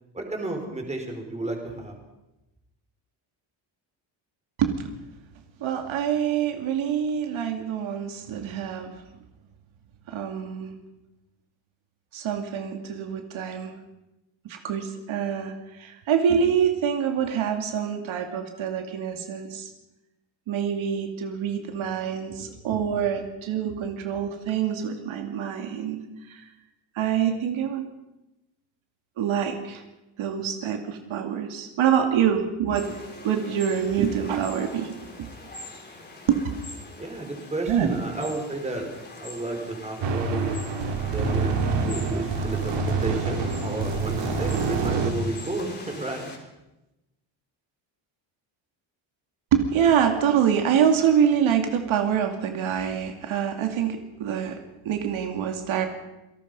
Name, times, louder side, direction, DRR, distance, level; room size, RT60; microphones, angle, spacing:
voice 1, 0.1-2.0 37.0-40.6 41.1-41.5 41.8-46.3, right 2 dB, 15° right, 3 dB, 4.6 m, -32 dB
voice 2, 5.6-8.9 10.1-10.7 12.1-13.7 14.4-19.7 20.5-26.5 26.9-27.9 29.2-29.8 30.2-33.0 33.2-35.3 36.3-36.4 37.7-37.9 49.5-55.9, right 8 dB, 80° right, 5 dB, 2.7 m, -25 dB
sound 1, 32.8-46.4, left 2 dB, 20° left, 4.3 m, -43 dB
sound 2, 40.0-45.1, right 4 dB, 65° right, 3.2 m, -26 dB
28.0 x 18.5 x 5.6 m, 0.96 s
cardioid pair, 150°, 47 cm